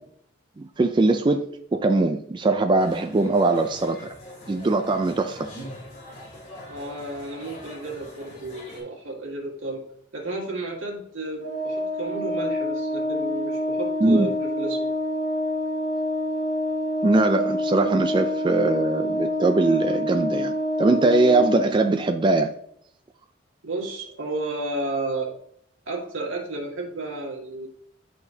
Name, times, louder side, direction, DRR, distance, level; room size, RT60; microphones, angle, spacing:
voice 1, 0.6-4.1 4.5-5.5 14.0-14.3 17.0-22.5, right 2 dB, 25° right, 6 dB, 0.3 m, -21 dB
sound 1, 2.8-8.8, left 1 dB, 35° left, 2.7 m, -42 dB
voice 2, 6.7-9.8 10.1-14.9 23.6-25.3 25.9-27.7, right 2 dB, 80° right, 0 dB, 1.9 m, -32 dB
Organ, 11.4-22.1, left 1 dB, 60° right, 2.0 m, -27 dB
10.5 x 4.2 x 2.7 m, 0.69 s
head